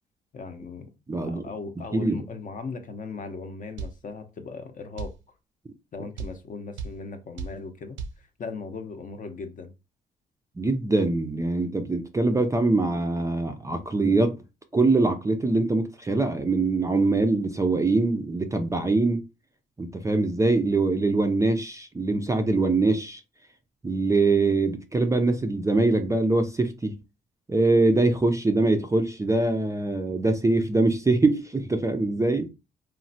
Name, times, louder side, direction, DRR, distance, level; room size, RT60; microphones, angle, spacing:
voice 1, 0.3-0.9 1.2-5.1 5.9-9.7, left 4 dB, 40° left, 0.6 m, -38 dB
voice 2, 1.1-1.4 1.9-2.2 10.6-14.4 14.7-19.2 19.8-23.2 23.8-27.0 27.5-32.5, right 2 dB, 15° right, 0.4 m, -23 dB
sound 1, 3.8-4.0 5.0-5.2 6.2-6.4 6.8-7.0 7.4-7.6 8.0-8.2, right 5 dB, 70° right, 0.5 m, -33 dB
3.1 x 2.1 x 2.6 m
cardioid pair, 90°, 20 cm